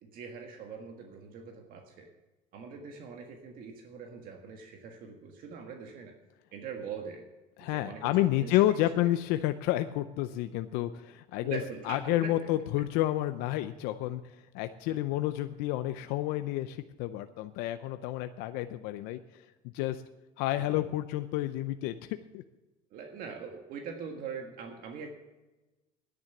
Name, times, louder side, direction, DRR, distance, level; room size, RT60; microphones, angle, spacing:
voice 1, 0.0-2.1 2.5-6.2 6.5-7.3 7.6-8.6 8.9-9.1 11.3-12.5 20.6-20.9 22.9-25.1, right 6 dB, 65° right, 3 dB, 1.7 m, -42 dB
voice 2, 7.6-11.6 11.9-19.4 19.7-20.0 20.4-22.4, left 14 dB, 80° left, 10 dB, 0.6 m, -30 dB
10.5 x 9.6 x 7.2 m, 1.1 s
supercardioid pair, 105°, 16 cm